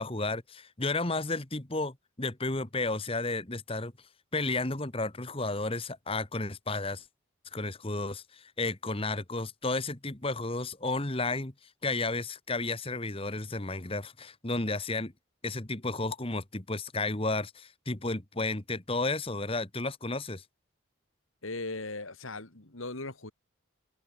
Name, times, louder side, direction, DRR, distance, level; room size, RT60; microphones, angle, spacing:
voice 1, 0.0-3.9 4.3-7.0 7.5-11.5 11.8-15.1 15.4-20.4, left 2 dB, 25° left, 1.5 m, -32 dB
voice 2, 21.4-23.3, left 2 dB, 75° left, 2.9 m, -38 dB
head